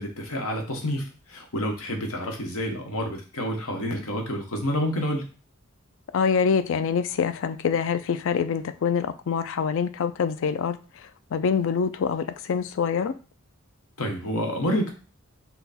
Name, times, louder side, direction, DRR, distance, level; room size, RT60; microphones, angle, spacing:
voice 1, 0.0-5.3 14.0-14.9, equal, 75° left, 1.1 m, -28 dB
voice 2, 6.1-13.1, left 6 dB, 60° left, 0.4 m, -25 dB
5.7 x 2.2 x 4.1 m
head